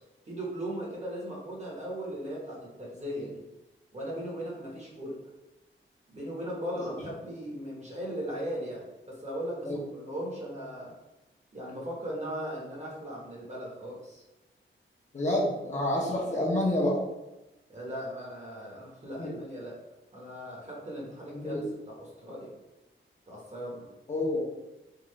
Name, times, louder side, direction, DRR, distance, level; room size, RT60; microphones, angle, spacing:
voice 1, 0.3-3.4 3.9-5.2 6.1-10.9 11.5-14.2 17.7-19.8 20.1-21.6 21.9-22.5 23.3-23.9, equal, 35° right, -4 dB, 1.1 m, -38 dB
voice 2, 15.1-17.0 19.2-19.3 21.3-21.6 24.1-24.4, left 1 dB, 35° left, -5 dB, 0.9 m, -28 dB
3.6 x 2.5 x 3.1 m, 0.99 s
wide cardioid pair, 125°, 21 cm